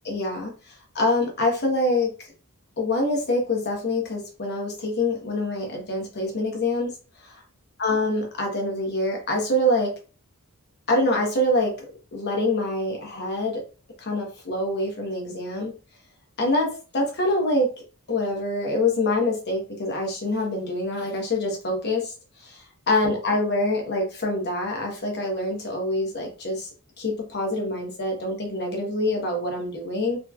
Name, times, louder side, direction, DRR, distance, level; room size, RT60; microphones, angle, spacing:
voice 1, 0.0-0.5 0.9-2.3 2.8-6.9 7.2-7.4 7.8-9.9 10.9-11.7 12.1-13.6 14.0-15.7 16.4-17.7 18.1-22.1 22.4-26.7 27.0-30.2, left 1 dB, 50° left, 1 dB, 1.2 m, -25 dB
3.7 x 3.1 x 2.4 m, 0.35 s
head